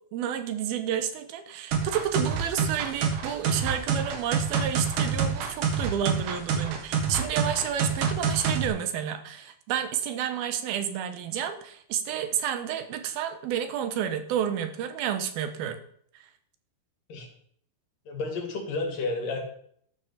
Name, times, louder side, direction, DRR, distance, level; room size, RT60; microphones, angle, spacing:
voice 1, 0.1-15.8, right 9 dB, 90° right, 9 dB, 3.0 m, -30 dB
sound 1, 1.7-8.7, right 6 dB, 65° right, 2.9 m, -27 dB
voice 2, 18.1-19.4, left 3 dB, 65° left, 2 dB, 4.0 m, -31 dB
12.5 x 6.9 x 7.0 m, 0.64 s
omnidirectional pair, 4.2 m